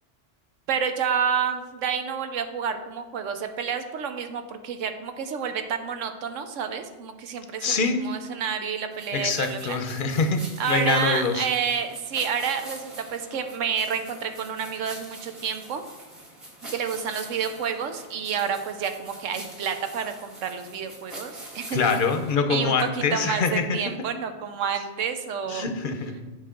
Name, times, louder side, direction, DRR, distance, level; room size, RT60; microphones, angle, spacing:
voice 1, 0.7-9.8 10.6-15.8 16.7-21.8 22.5-25.7, right 7 dB, 85° right, 7 dB, 1.1 m, -29 dB
voice 2, 7.6-8.0 9.1-11.5 21.7-23.8 25.5-26.2, left 4 dB, 50° left, 6 dB, 0.8 m, -24 dB
sound 1, 8.9-22.3, right 1 dB, 45° right, 2.3 m, -44 dB
8.4 x 5.9 x 3.8 m, 1.3 s
omnidirectional pair, 1.3 m